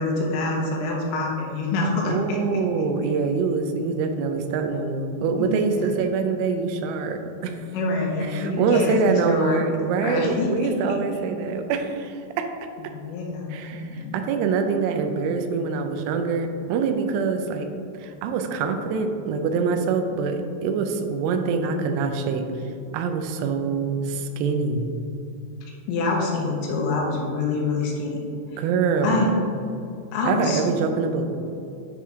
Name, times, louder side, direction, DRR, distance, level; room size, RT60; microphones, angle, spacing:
voice 1, 0.0-2.4 5.4-6.0 7.7-9.6 10.0-10.7 12.9-14.1 25.9-28.2 29.0-29.3 30.1-30.6, left 3 dB, 80° left, -2 dB, 3.0 m, -26 dB
voice 2, 2.1-7.6 8.2-12.5 13.5-17.7 18.0-22.5 22.9-24.9 28.6-29.4 30.2-31.4, right 5 dB, 90° right, 6 dB, 3.1 m, -25 dB
9.9 x 3.6 x 3.5 m, 2.6 s
omnidirectional pair, 5.4 m